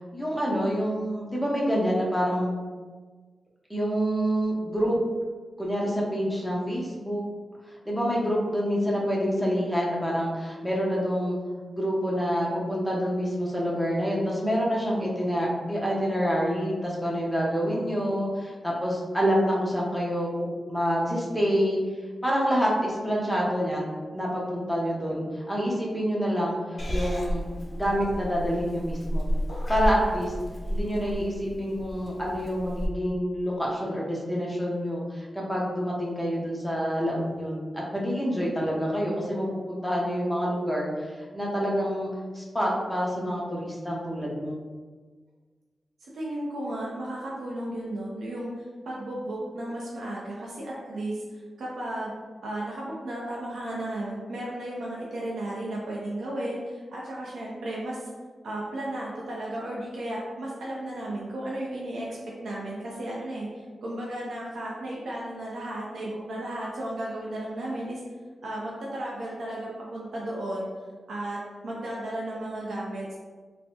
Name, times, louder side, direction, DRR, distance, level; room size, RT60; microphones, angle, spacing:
voice 1, 0.1-2.6 3.7-5.0 5.6-7.2 7.9-11.4 11.7-21.8 22.2-23.8 24.1-27.5 27.7-29.3 29.7-30.3 30.7-42.1 42.3-44.6, equal, ahead, -4 dB, 0.8 m, -27 dB
Purr / Meow, 26.8-32.9, equal, 40° left, 0.5 m, -32 dB
voice 2, 46.0-48.5 48.8-52.1 52.4-58.1 58.4-68.0 68.4-70.7 71.1-73.1, right 1 dB, 85° right, -5 dB, 0.5 m, -34 dB
3.3 x 2.0 x 2.8 m, 1.4 s
cardioid pair, 75°, 0 cm